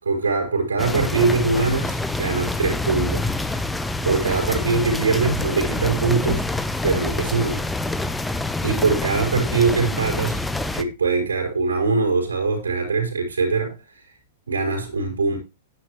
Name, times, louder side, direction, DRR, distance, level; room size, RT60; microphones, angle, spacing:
voice 1, 0.0-3.3 4.0-6.4 6.8-7.6 8.6-10.4 10.7-13.7 14.5-15.4, right 4 dB, 80° right, 4.6 m, -22 dB
sound 1, 0.8-10.8, left 2 dB, 5° left, 0.9 m, -26 dB
10.5 x 9.5 x 3.1 m
figure-of-eight pair, 105°, 0 cm